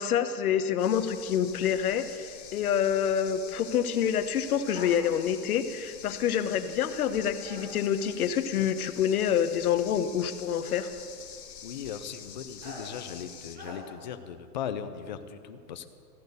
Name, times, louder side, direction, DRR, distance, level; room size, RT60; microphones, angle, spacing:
voice 1, 0.0-10.9, left 9 dB, 60° left, 10 dB, 1.1 m, -27 dB
sound 1, 0.8-13.6, left 8 dB, 90° left, 1.6 m, -46 dB
sound 2, 4.6-5.0 7.4-7.7 9.0-9.1 10.6-10.9 12.6-12.9 13.5-13.8, equal, 20° right, 2.5 m, -44 dB
voice 2, 11.6-15.9, left 8 dB, 30° left, 9 dB, 0.5 m, -38 dB
15.0 x 10.5 x 6.8 m, 2.4 s
hypercardioid pair, 160°, 48 cm